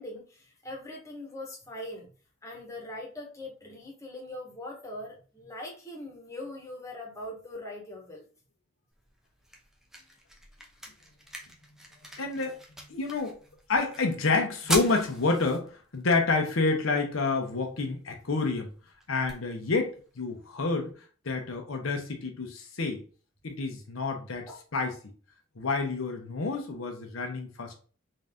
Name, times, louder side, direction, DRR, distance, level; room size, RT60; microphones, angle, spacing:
voice 1, 0.0-2.1 2.4-8.2 24.5-24.6, left 1 dB, 15° left, -2 dB, 1.1 m, -41 dB
sound 1, 8.9-20.9, equal, ahead, 0.6 m, -42 dB
voice 2, 12.1-13.4 13.7-18.7 19.1-20.9 21.2-23.0 23.4-25.0 25.6-27.7, left 3 dB, 85° left, 3 dB, 0.9 m, -29 dB
3.9 x 2.7 x 3.5 m, 0.39 s
head